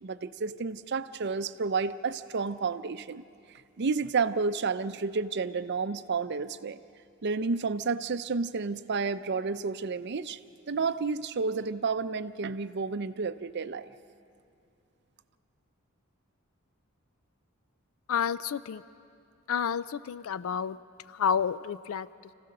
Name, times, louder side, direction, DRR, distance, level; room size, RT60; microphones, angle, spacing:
voice 1, 0.0-3.2 3.8-6.8 7.2-10.4 10.7-13.9, right 4 dB, 55° right, 13 dB, 0.5 m, -31 dB
voice 2, 18.1-18.8 19.5-20.8 21.2-22.1, left 7 dB, 75° left, 17 dB, 0.4 m, -29 dB
26.0 x 15.5 x 6.6 m, 2.5 s
head